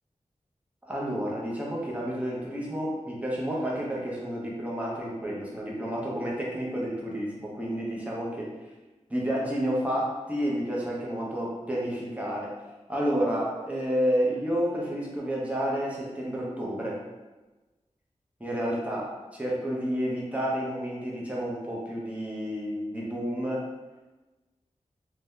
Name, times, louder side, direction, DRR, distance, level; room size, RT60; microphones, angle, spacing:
voice 1, 0.8-8.5 9.1-12.5 12.9-17.0 18.4-23.7, equal, 10° right, -5 dB, 0.7 m, -30 dB
2.7 x 2.2 x 3.6 m, 1.2 s
wide cardioid pair, 100°, 13 cm